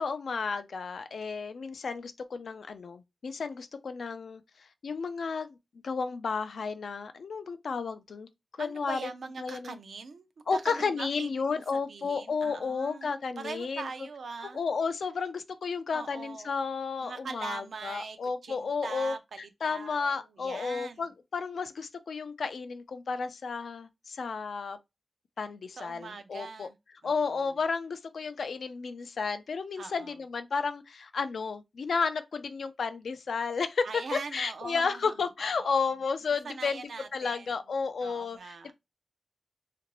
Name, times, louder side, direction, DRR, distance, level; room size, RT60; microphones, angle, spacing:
voice 1, 0.0-4.4 4.8-5.6 5.8-8.3 8.6-9.0 9.4-9.8 10.5-13.9 14.5-19.1 19.6-24.8 25.4-26.7 27.0-36.8 37.1-38.7, left 5 dB, 80° left, 0.3 m, -32 dB
voice 2, 8.6-13.1 13.4-14.6 15.9-16.6 17.0-18.2 18.4-21.1 25.8-26.7 27.0-27.4 29.8-30.2 33.8-35.9 36.4-37.5 38.0-38.7, right 4 dB, 85° right, 0.4 m, -42 dB
2.9 x 2.5 x 2.9 m
wide cardioid pair, 135°, 0 cm